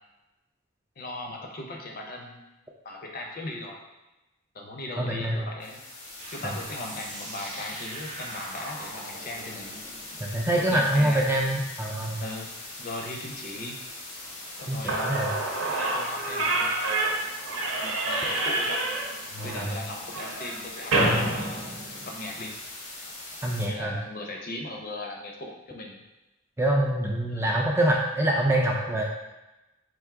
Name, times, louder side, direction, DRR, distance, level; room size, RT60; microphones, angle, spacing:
voice 1, 1.0-2.4 2.8-3.8 4.5-5.8 6.3-9.8 10.6-11.3 12.2-12.5 12.8-13.8 14.6-17.1 17.8-18.8 19.4-21.6 22.0-22.5 23.6-26.0 27.3-27.5, left 2 dB, 45° left, 1 dB, 0.6 m, -38 dB
voice 2, 5.0-5.4 10.2-12.2 14.7-15.3 19.5-19.8 23.4-24.0 26.6-29.0, right 1 dB, 10° right, -1 dB, 0.3 m, -25 dB
sound 1, 5.6-23.7, left 2 dB, 85° left, 1.0 m, -41 dB
sound 2, 6.2-11.5, right 2 dB, 35° right, 0.7 m, -44 dB
Slam / Squeak, 14.6-14.7 14.9-22.4, right 2 dB, 75° right, 0.8 m, -28 dB
4.6 x 2.6 x 3.5 m, 1.0 s
head